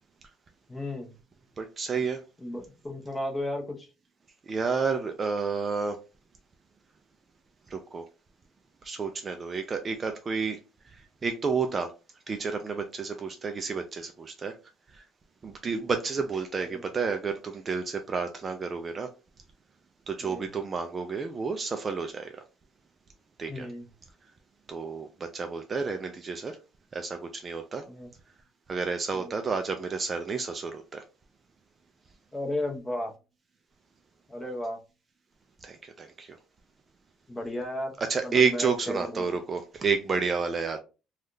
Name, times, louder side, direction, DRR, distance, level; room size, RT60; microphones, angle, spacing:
voice 1, 0.7-1.1 2.4-3.9 16.7-16.8 20.2-20.4 23.5-23.8 27.9-28.1 29.1-29.3 32.3-33.1 34.3-34.8 37.3-37.9 38.2-39.3, left 1 dB, 15° left, 0.8 m, -34 dB
voice 2, 1.6-2.2 4.5-6.0 7.7-8.0 8.8-10.6 10.9-11.9 12.3-14.6 14.9-15.0 15.4-19.1 20.1-22.4 23.4-23.7 24.7-26.6 26.9-27.8 28.7-31.0 35.6-36.4 38.0-40.8, right 5 dB, 25° right, 0.3 m, -30 dB
3.4 x 2.3 x 2.6 m
cardioid pair, 140°, 0 cm